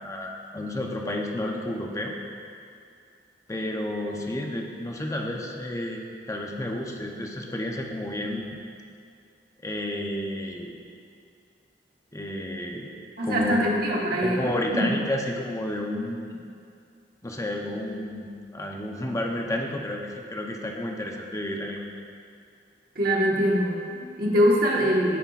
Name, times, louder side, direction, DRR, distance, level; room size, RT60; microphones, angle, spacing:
voice 1, 0.0-2.1 3.5-8.6 9.6-10.8 12.1-12.9 13.2-13.6 14.2-16.4 17.2-18.3 18.5-21.8, left 1 dB, 20° left, 1 dB, 0.7 m, -31 dB
voice 2, 13.2-14.9 22.9-25.2, equal, 55° right, -3 dB, 1.5 m, -23 dB
16.0 x 5.7 x 2.4 m, 2.4 s
head